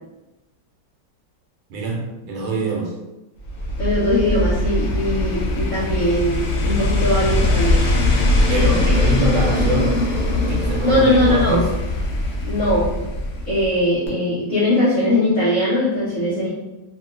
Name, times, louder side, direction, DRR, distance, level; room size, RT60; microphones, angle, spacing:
voice 1, 1.7-2.9 8.5-10.0 10.3-11.7, right 2 dB, 85° right, 0 dB, 1.3 m, -24 dB
sound 1, 3.4-13.8 14.1-14.2, left 2 dB, 85° left, 0.6 m, -21 dB
voice 2, 3.8-7.8 10.7-11.6 12.5-12.9 13.5-16.5, left 1 dB, 50° left, -11 dB, 1.0 m, -20 dB
2.9 x 2.8 x 2.4 m, 1.0 s
omnidirectional pair, 2.0 m